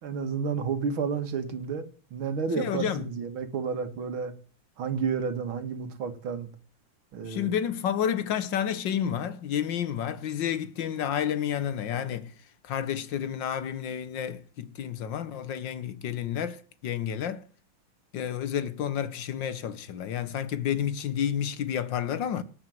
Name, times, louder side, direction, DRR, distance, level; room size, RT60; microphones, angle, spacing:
voice 1, 0.0-4.3 4.8-6.5 7.1-7.5, right 6 dB, 80° right, 2.5 m, -31 dB
voice 2, 2.6-3.1 7.3-12.3 12.6-17.4 18.1-22.4, left 9 dB, 65° left, 1.6 m, -30 dB
18.5 x 6.3 x 9.3 m
omnidirectional pair, 2.2 m